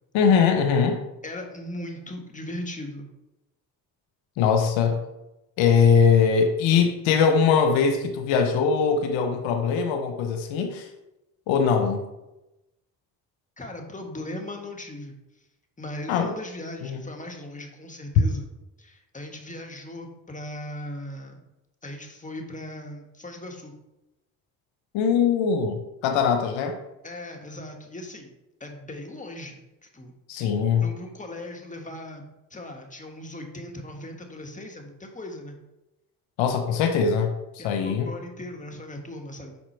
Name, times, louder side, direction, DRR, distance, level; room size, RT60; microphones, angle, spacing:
voice 1, 0.1-1.0 4.4-5.0 5.6-10.9 11.5-12.0 16.1-16.3 16.8-17.0 24.9-26.8 30.3-30.8 36.4-38.1, left 6 dB, 80° left, 5 dB, 0.8 m, -21 dB
voice 2, 1.2-3.1 13.6-15.1 15.8-18.4 18.8-21.4 21.8-23.7 27.0-28.3 28.6-30.5 30.8-35.6 37.6-39.6, left 1 dB, 15° left, 2 dB, 1.5 m, -38 dB
5.5 x 4.3 x 4.4 m, 0.94 s
supercardioid pair, 55°, 45 cm